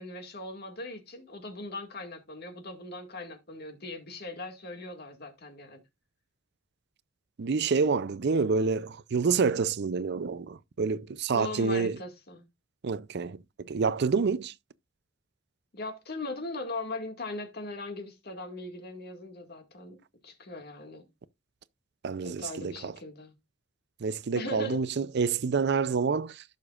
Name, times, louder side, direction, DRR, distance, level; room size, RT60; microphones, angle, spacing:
voice 1, 0.0-5.8 11.3-12.4 15.7-21.1 22.2-23.3 24.4-24.8, left 2 dB, 55° left, 2.0 m, -39 dB
voice 2, 7.4-12.0 12.8-14.5 22.0-22.9 24.0-26.4, right 5 dB, 55° right, 0.5 m, -28 dB
16.0 x 6.8 x 2.4 m
head